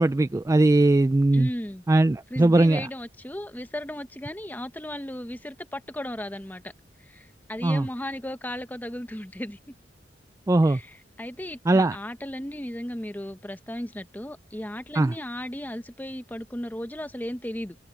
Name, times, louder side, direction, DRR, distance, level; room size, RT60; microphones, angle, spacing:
voice 1, 0.0-1.5 1.9-2.9 7.6-7.9 10.5-10.8 11.7-12.0 14.9-15.1, right 2 dB, 15° right, 0.3 m, -20 dB
voice 2, 1.3-1.8 2.3-6.6 7.1-9.6 10.7-17.8, left 1 dB, 10° left, 0.9 m, -35 dB
head